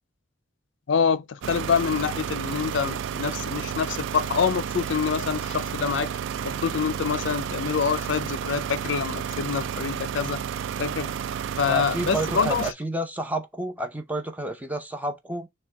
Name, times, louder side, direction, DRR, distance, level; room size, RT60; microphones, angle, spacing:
voice 1, 0.9-6.1 6.4-10.4 10.8-11.1 11.6-12.7, left 6 dB, 65° left, 0.4 m, -26 dB
sound 1, 1.4-12.7, right 8 dB, 70° right, 0.3 m, -31 dB
voice 2, 11.7-15.5, right 1 dB, 10° right, 0.6 m, -30 dB
6.2 x 2.2 x 3.5 m
head